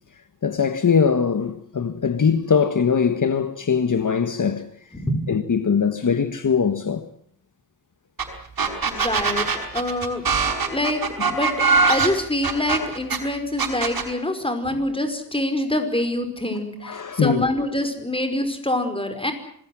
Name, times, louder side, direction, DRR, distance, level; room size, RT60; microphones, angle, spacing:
voice 1, 0.4-4.7 5.3-7.1 16.8-17.5, left 6 dB, 55° left, 1.6 m, -21 dB
voice 2, 4.9-5.3 8.9-9.5 9.7-10.2 10.7-11.5 11.9-19.3, left 1 dB, 15° left, 5.2 m, -25 dB
sound 1, 8.2-8.3 8.6-13.2 13.6-14.1, right 5 dB, 70° right, 5.7 m, -21 dB
26.0 x 20.5 x 7.7 m
wide cardioid pair, 100°, 36 cm